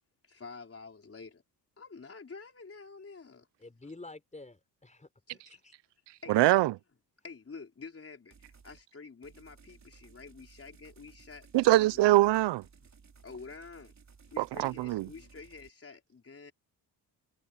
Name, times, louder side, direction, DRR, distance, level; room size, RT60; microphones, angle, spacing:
voice 1, 0.2-1.4 1.8-3.5 5.3-5.6 6.2-6.4 7.2-12.0 13.2-13.9 14.3-16.5, left 4 dB, 35° left, 4.3 m, -48 dB
voice 2, 3.6-5.7, left 2 dB, 15° left, 4.2 m, -49 dB
voice 3, 6.3-6.7 11.5-12.6 14.4-15.0, right 17 dB, 75° right, 0.6 m, -23 dB
sound 1, 8.3-8.8 9.2-15.7, right 5 dB, 40° right, 3.2 m, -58 dB
cardioid pair, 90°, 42 cm